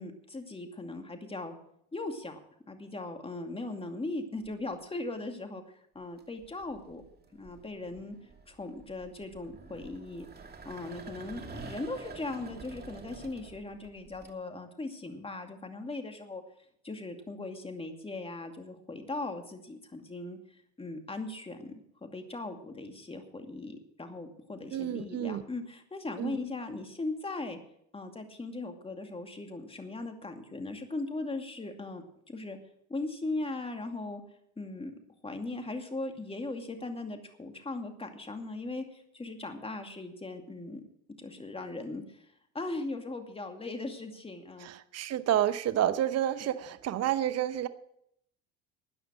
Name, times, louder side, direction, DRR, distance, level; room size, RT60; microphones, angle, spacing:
voice 1, 0.0-1.6 1.9-2.4 2.7-7.0 7.3-8.2 8.5-10.3 10.6-16.4 16.8-21.7 22.0-27.6 27.9-32.6 32.9-34.2 34.6-34.9 35.2-40.8 41.2-42.3 42.5-44.7, left 2 dB, 15° left, 5 dB, 2.4 m, -39 dB
sound 1, 4.4-4.9 6.0-14.3, right 4 dB, 25° right, 2.4 m, -48 dB
voice 2, 24.7-25.4 26.2-26.4 44.6-47.7, right 11 dB, 45° right, 13 dB, 0.9 m, -29 dB
13.5 x 9.4 x 6.3 m, 0.72 s
supercardioid pair, 80°, 35 cm